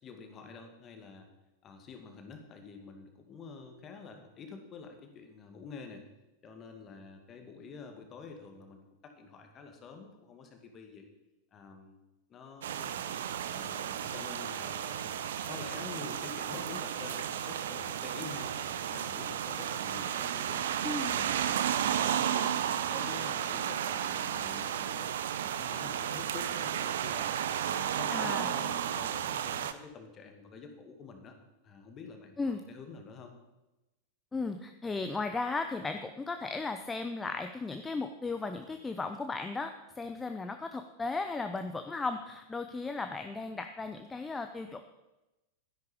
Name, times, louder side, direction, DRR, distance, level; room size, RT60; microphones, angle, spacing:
voice 1, 0.0-1.3 1.6-6.0 6.4-11.1 11.5-12.0 12.3-13.0 13.4-20.6 21.0-25.1 25.4-31.3 31.6-33.3, left 5 dB, 30° left, 5 dB, 2.2 m, -48 dB
sound 1, 12.6-29.7, right 9 dB, 60° right, 0.7 m, -33 dB
voice 2, 20.8-21.2 28.1-28.5 32.4-32.6 34.3-44.8, left 3 dB, 10° left, 7 dB, 0.7 m, -36 dB
12.5 x 10.5 x 5.2 m, 1.0 s
figure-of-eight pair, 90°, 0 cm